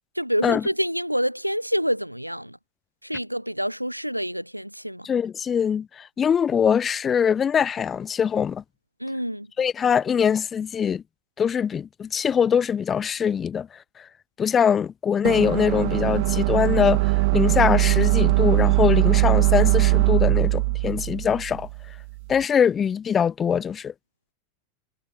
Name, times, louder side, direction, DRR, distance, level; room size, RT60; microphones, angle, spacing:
voice 1, 0.2-2.6 3.0-5.1 9.0-9.5, equal, 90° right, 1.8 m, -27 dB
voice 2, 5.0-8.6 9.6-11.0 11.4-13.7 14.4-21.7 22.3-23.9, left 7 dB, 20° left, 1.0 m, -22 dB
sound 1, 15.2-22.3, right 26 dB, 50° right, 1.9 m, -21 dB
figure-of-eight pair, 90°, 0 cm